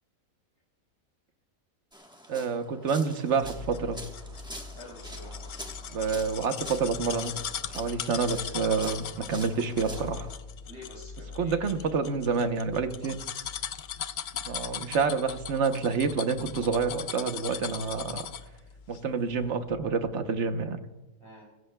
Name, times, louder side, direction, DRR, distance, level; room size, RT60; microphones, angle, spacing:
sound 1, 1.9-10.4, equal, 5° right, 1.1 m, -46 dB
voice 1, 2.3-4.0 5.9-7.3 7.7-10.3 11.4-13.2 14.4-18.2 18.9-20.8, right 5 dB, 55° right, 8 dB, 1.2 m, -28 dB
sound 2, 3.4-18.6 18.9-19.0, left 8 dB, 70° left, 0.4 m, -39 dB
sound 3, 3.4-20.1, left 3 dB, 35° left, 2.5 m, -46 dB
voice 2, 4.7-5.5 10.6-11.7 21.2-21.5, left 1 dB, 20° right, -5 dB, 3.0 m, -47 dB
23.0 x 15.5 x 2.3 m, 1.1 s
omnidirectional pair, 1.5 m